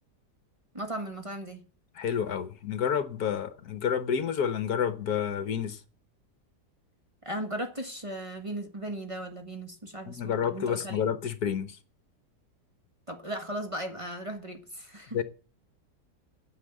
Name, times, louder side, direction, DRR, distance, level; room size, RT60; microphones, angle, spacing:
voice 1, 0.7-1.6 7.2-11.1 13.1-15.2, right 1 dB, 20° right, 1.4 m, -37 dB
voice 2, 1.9-5.8 10.1-11.8 15.1-15.2, left 8 dB, 65° left, 1.4 m, -29 dB
9.8 x 7.1 x 8.9 m
omnidirectional pair, 1.9 m